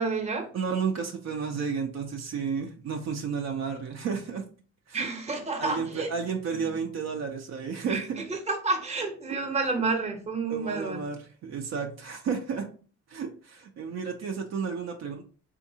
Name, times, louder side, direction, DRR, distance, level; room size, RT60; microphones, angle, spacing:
voice 1, 0.0-0.5 4.9-6.1 7.9-8.0 8.3-11.0, right 3 dB, 20° right, 4 dB, 0.8 m, -29 dB
voice 2, 0.5-4.4 4.9-5.1 5.6-8.2 10.5-12.7 13.1-15.3, right 6 dB, 60° right, 3 dB, 0.6 m, -32 dB
3.6 x 2.5 x 2.7 m, 0.40 s
cardioid pair, 90°, 30 cm